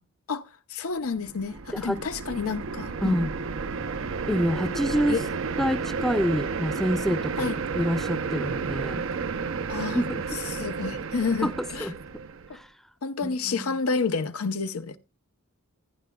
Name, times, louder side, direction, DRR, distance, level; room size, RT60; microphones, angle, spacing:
voice 1, 0.3-3.2 5.1-5.2 7.4-7.6 9.7-10.0 10.3-11.9 13.0-15.0, left 4 dB, 80° left, 0.7 m, -29 dB
sound 1, 1.1-12.5, right 5 dB, 65° right, 0.6 m, -32 dB
voice 2, 3.0-3.3 4.3-5.2 5.6-9.0 9.9-10.2 11.4-11.5 11.8-12.0 12.5-12.7 13.2-13.8, equal, ahead, 0.5 m, -27 dB
Keyboard (musical), 4.3-7.1, left 4 dB, 60° left, 1.5 m, -44 dB
15.0 x 9.3 x 2.2 m
head